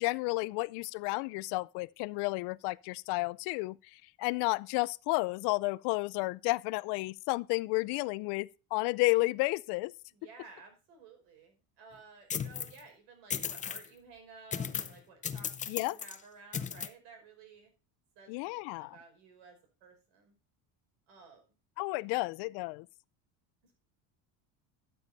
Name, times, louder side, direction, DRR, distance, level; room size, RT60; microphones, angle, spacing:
voice 1, 0.0-9.9 15.7-16.0 18.3-19.0 21.8-22.9, left 24 dB, 70° left, 0.5 m, -32 dB
voice 2, 10.1-17.7 18.2-20.3 21.1-21.4 22.1-22.2 23.6-23.8, right 4 dB, 85° right, 5.2 m, -55 dB
sound 1, 12.3-12.8 13.3-13.9 14.5-15.0 15.2-16.2 16.5-16.9, left 7 dB, 20° left, 0.5 m, -36 dB
12.5 x 7.1 x 4.0 m
cardioid pair, 150°, 41 cm